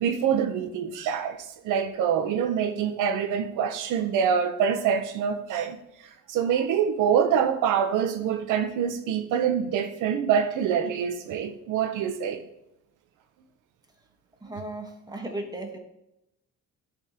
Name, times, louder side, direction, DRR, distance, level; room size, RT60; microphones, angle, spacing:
voice 1, 0.0-1.4 1.6-5.8 6.3-12.4, right 8 dB, 90° right, 0.7 m, -25 dB
voice 2, 14.4-15.8, right 1 dB, 15° right, 1.1 m, -36 dB
10.5 x 3.6 x 2.8 m
cardioid pair, 90°, 30 cm